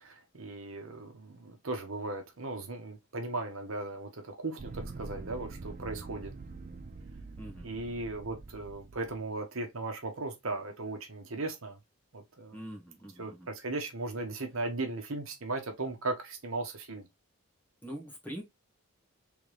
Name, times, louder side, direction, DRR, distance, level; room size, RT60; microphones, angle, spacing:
voice 1, 0.0-6.3 7.6-11.8 12.1-12.6 13.2-17.1, right 2 dB, 70° right, 1.1 m, -37 dB
sound 1, 4.6-9.2, right 3 dB, 40° right, 0.4 m, -45 dB
voice 2, 7.4-7.7 12.5-13.5 17.8-18.4, equal, 10° left, 1.5 m, -43 dB
3.6 x 3.5 x 3.1 m
head